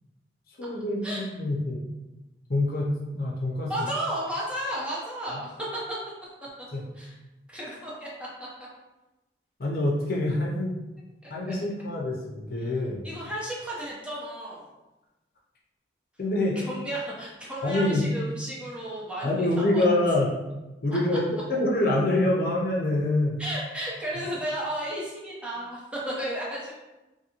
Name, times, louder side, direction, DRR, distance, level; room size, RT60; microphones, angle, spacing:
voice 1, 0.6-1.8 2.5-3.7 6.7-6.8 9.6-10.8 11.3-13.0 16.2-16.6 17.6-18.0 19.2-20.3 20.8-23.4, left 1 dB, 55° left, -3 dB, 0.6 m, -25 dB
voice 2, 3.7-5.6 6.2-6.3 6.9-7.1 7.5-8.5 11.2-11.3 13.0-14.7 16.6-19.5 19.7-19.8 23.4-26.7, right 1 dB, 5° right, -6 dB, 0.6 m, -33 dB
2.6 x 2.6 x 2.8 m, 1.0 s
head